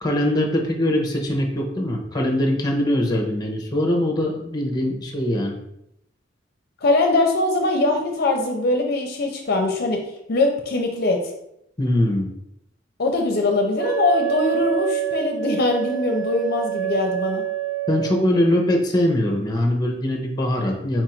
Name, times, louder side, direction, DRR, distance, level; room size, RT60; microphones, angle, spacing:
voice 1, 0.0-5.6 11.8-12.3 17.9-21.0, left 1 dB, 20° left, 1 dB, 0.8 m, -22 dB
voice 2, 6.8-10.0 10.3-11.3 13.0-17.4, left 2 dB, 55° left, 2 dB, 0.6 m, -22 dB
Wind instrument woodwind instrument, 13.8-18.2, right 13 dB, 85° right, 1.2 m, -26 dB
4.6 x 2.5 x 4.3 m, 0.79 s
head